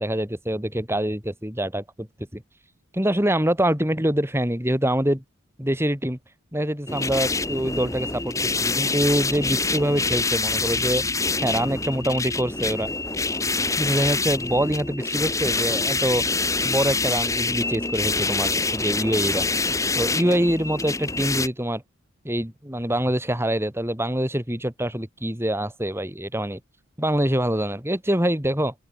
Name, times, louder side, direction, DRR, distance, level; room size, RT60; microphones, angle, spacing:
voice 1, 0.0-2.1 2.3-2.4 2.9-5.2 5.6-6.2 6.5-11.1 11.4-12.9 13.8-16.2 16.6-19.5 19.9-21.8 22.2-26.6 27.0-28.7, right 1 dB, 10° right, 4.5 m, -25 dB
sound 1, 6.9-21.5, left 3 dB, 15° left, 4.5 m, -25 dB
open air
head